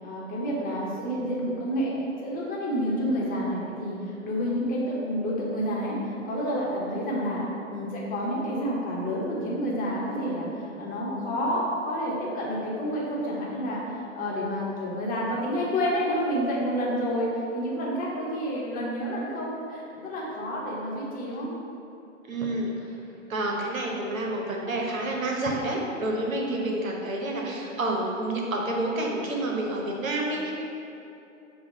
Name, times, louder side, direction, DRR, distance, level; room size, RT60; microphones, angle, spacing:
voice 1, 0.0-21.5 26.4-26.6, equal, 20° left, -4 dB, 0.9 m, -29 dB
voice 2, 22.3-22.9 23.3-30.5, right 1 dB, 85° right, -1 dB, 0.9 m, -29 dB
5.8 x 2.3 x 3.8 m, 2.9 s
hypercardioid pair, 115°, 39 cm